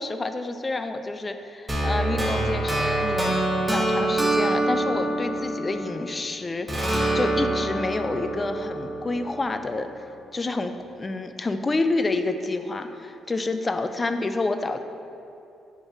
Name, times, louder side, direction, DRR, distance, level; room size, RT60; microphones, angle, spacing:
voice 1, 0.0-9.9 10.3-10.7 11.0-14.8, left 2 dB, 25° left, 8 dB, 0.4 m, -28 dB
sound 1, 1.7-6.2 6.7-9.8, right 1 dB, 15° right, 1.1 m, -25 dB
4.8 x 4.5 x 5.8 m, 2.7 s
cardioid pair, 90°, 0 cm